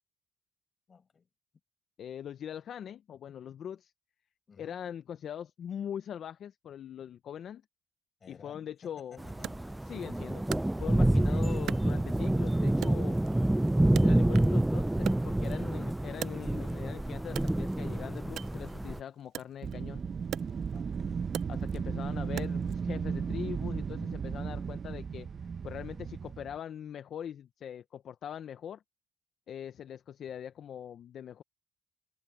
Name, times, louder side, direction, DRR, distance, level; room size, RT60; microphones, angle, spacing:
voice 1, 0.9-1.3 4.5-4.8 8.2-9.9 11.0-11.7 20.7-21.3, left 5 dB, 40° left, 6.1 m, -55 dB
voice 2, 2.0-3.9 4.6-7.6 8.3-9.2 9.9-13.2 14.0-20.0 21.5-25.3 25.6-28.8 29.5-31.4, left 9 dB, 65° left, 0.7 m, -42 dB
sound 1, 9.2-19.0, right 1 dB, 10° right, 0.5 m, -28 dB
Wood, 9.4-11.2 11.7-12.4 12.8-14.6 14.9-16.9 17.3-22.8, right 11 dB, 75° right, 0.4 m, -43 dB
Wind, 19.6-26.6, right 6 dB, 45° right, 0.8 m, -35 dB
cardioid pair, 90°, 0 cm